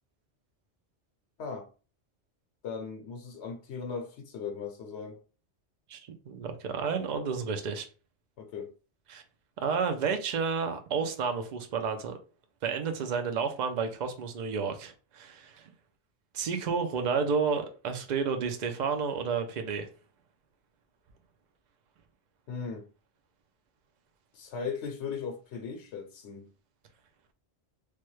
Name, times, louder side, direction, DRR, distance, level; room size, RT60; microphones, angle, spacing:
voice 1, 2.6-5.2 8.4-8.7 22.5-22.9 24.3-26.5, left 5 dB, 75° left, 0.9 m, -38 dB
voice 2, 6.3-7.9 9.1-9.2 9.6-12.2 12.6-15.7 16.3-19.9, right 5 dB, 55° right, 0.5 m, -31 dB
3.2 x 2.2 x 3.1 m
omnidirectional pair, 1.2 m